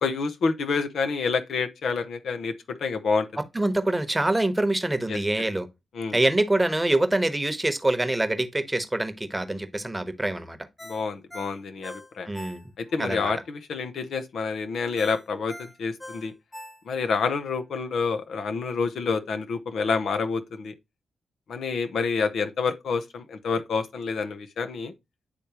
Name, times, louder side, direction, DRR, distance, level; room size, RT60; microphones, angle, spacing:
voice 1, 0.0-3.3 5.1-5.2 5.9-6.2 10.8-12.3 12.8-16.3 16.9-20.7 21.5-24.9, left 5 dB, 75° left, 0.7 m, -28 dB
voice 2, 3.5-5.7 6.1-10.6 12.3-12.6 13.0-13.3, right 1 dB, 15° right, 1.0 m, -25 dB
Ringtone, 10.8-13.0 13.4-13.5 15.0-17.2 17.6-17.7, left 1 dB, 15° left, 1.2 m, -43 dB
9.8 x 3.3 x 2.9 m
supercardioid pair, 50°, 0 cm